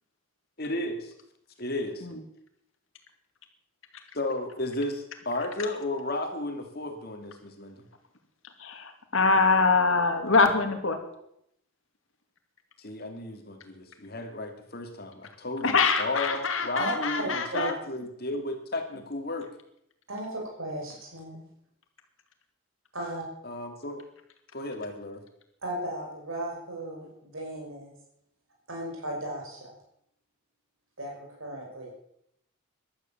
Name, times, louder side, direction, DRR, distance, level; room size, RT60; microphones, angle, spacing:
voice 1, 0.6-1.1 1.6-2.0 4.1-7.8 12.8-19.5 23.4-24.0 24.5-25.2, left 2 dB, 45° left, 5 dB, 2.6 m, -33 dB
voice 2, 8.6-11.0 15.6-17.7, left 4 dB, 65° left, 6 dB, 2.4 m, -24 dB
voice 3, 16.8-17.7 20.1-21.5 22.9-23.2 25.6-27.9 28.7-29.7 31.0-31.9, right 1 dB, 70° right, -1 dB, 5.6 m, -35 dB
15.5 x 12.0 x 7.3 m, 0.75 s
head